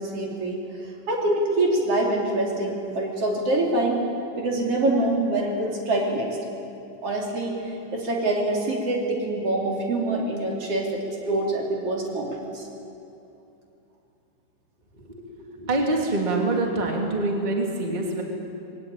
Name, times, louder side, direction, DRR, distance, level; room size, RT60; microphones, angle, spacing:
voice 1, 0.0-4.0 4.4-6.4 7.0-12.7, right 2 dB, 40° right, -1 dB, 3.6 m, -25 dB
voice 2, 15.6-18.2, right 2 dB, 15° right, 0 dB, 2.0 m, -25 dB
21.5 x 17.0 x 8.9 m, 2.8 s
omnidirectional pair, 4.6 m